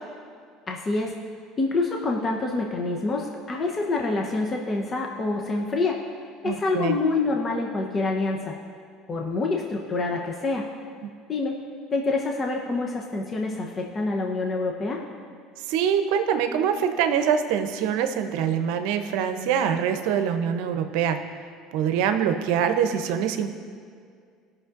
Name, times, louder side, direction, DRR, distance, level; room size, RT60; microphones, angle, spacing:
voice 1, 0.7-1.1 1.6-6.0 6.4-8.5 9.1-10.6 11.3-11.5 11.9-15.0, left 3 dB, 35° left, 1 dB, 0.9 m, -26 dB
voice 2, 6.4-7.0 15.7-21.2 21.7-23.5, right 8 dB, 75° right, 8 dB, 0.7 m, -24 dB
15.5 x 6.0 x 2.6 m, 2.2 s
supercardioid pair, 90°, 0 cm